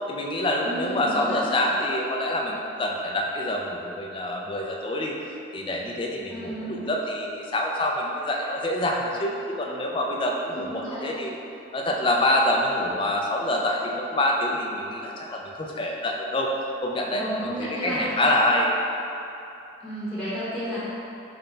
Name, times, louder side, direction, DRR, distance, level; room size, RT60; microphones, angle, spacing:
voice 1, 0.1-11.4 11.7-16.5 16.8-17.2 17.6-18.7, left 1 dB, 25° left, -1 dB, 0.3 m, -26 dB
voice 2, 0.6-1.5 6.3-6.9 10.5-11.1 17.1-18.1 19.8-20.8, equal, 5° left, -12 dB, 0.9 m, -32 dB
5.6 x 2.2 x 3.8 m, 2.8 s
head